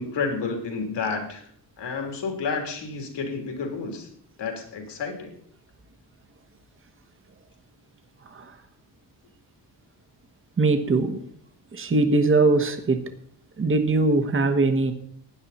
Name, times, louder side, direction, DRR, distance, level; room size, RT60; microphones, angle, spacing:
voice 1, 0.0-1.4 1.8-4.1 4.4-5.3, left 4 dB, 70° left, 3 dB, 3.3 m, -30 dB
voice 2, 10.6-11.2 11.7-13.0 13.6-14.9, right 3 dB, 30° right, 7 dB, 1.4 m, -21 dB
16.5 x 10.5 x 4.2 m, 0.63 s
wide cardioid pair, 155°, 43 cm